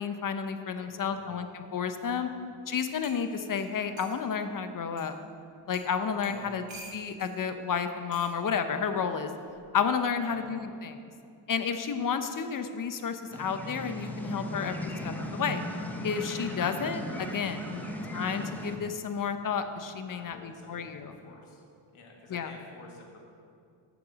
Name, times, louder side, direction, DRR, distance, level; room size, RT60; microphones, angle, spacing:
voice 1, 0.0-2.3 2.7-5.2 5.7-6.6 6.9-9.3 9.7-11.1 11.5-15.6 16.0-17.6 18.1-21.1 22.3-22.5, left 6 dB, 40° left, 8 dB, 0.7 m, -31 dB
voice 2, 0.8-1.3 2.1-2.4 6.3-6.6 10.2-10.4 20.0-21.6 21.9-23.2, left 3 dB, 80° left, 0 dB, 1.8 m, -51 dB
sound 1, 2.6-2.7 3.0-4.2 5.0-5.1 5.7-5.9 6.2-7.3 8.1-8.3 9.4-9.7, right 2 dB, 60° right, 1.8 m, -48 dB
sound 2, 13.3-18.8, left 1 dB, 5° left, 0.8 m, -37 dB
7.5 x 6.1 x 7.3 m, 2.4 s
cardioid pair, 100°, 49 cm